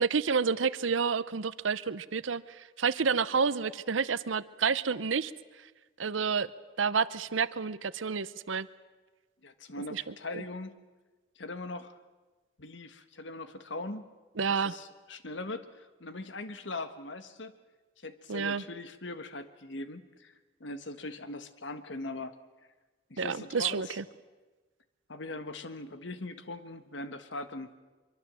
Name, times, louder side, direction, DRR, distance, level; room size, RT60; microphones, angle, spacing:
voice 1, 0.0-5.3 6.0-6.5 6.8-8.7 9.9-10.0 10.3-10.4 14.4-14.7 18.3-18.6 23.2-24.0, right 5 dB, 90° right, 16 dB, 0.7 m, -29 dB
voice 2, 9.4-10.8 11.4-11.9 12.6-14.1 14.5-17.5 18.0-20.3 20.6-22.3 23.1-24.0 25.1-27.8, left 2 dB, 75° left, 10 dB, 1.4 m, -41 dB
24.5 x 23.5 x 7.6 m, 1.3 s
head